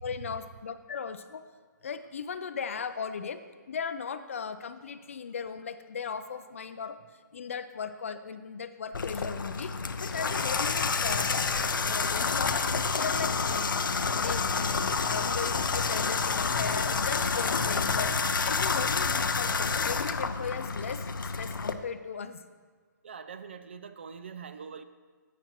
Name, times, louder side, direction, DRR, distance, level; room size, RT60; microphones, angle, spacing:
voice 1, 0.0-1.4 1.8-3.4 3.7-7.0 7.3-11.3 11.8-12.6 12.9-13.8 14.1-18.1 18.4-22.4, left 6 dB, 40° left, 11 dB, 0.4 m, -37 dB
Water tap faucet / Bathtub (filling or washing), 8.9-21.7, left 5 dB, 90° left, 0.6 m, -29 dB
voice 2, 23.0-24.8, right 6 dB, 35° right, 11 dB, 0.3 m, -43 dB
15.5 x 6.0 x 2.9 m, 1.5 s
hypercardioid pair, 170°, 11 cm